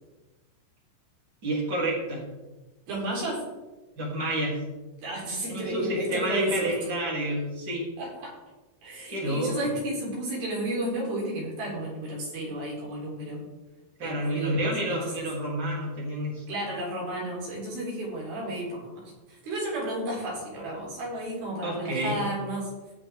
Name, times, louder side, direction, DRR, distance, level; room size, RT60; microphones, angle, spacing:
voice 1, 1.4-2.2 4.0-4.6 5.5-7.9 9.1-9.6 14.0-16.4 21.6-22.2, right 1 dB, 25° right, -4 dB, 3.2 m, -29 dB
voice 2, 2.9-3.5 5.0-6.7 8.0-8.4 8.8-13.4 14.0-15.3 16.5-22.7, right 1 dB, 55° right, -5 dB, 5.5 m, -32 dB
18.5 x 6.9 x 3.8 m, 1.1 s
omnidirectional pair, 5.4 m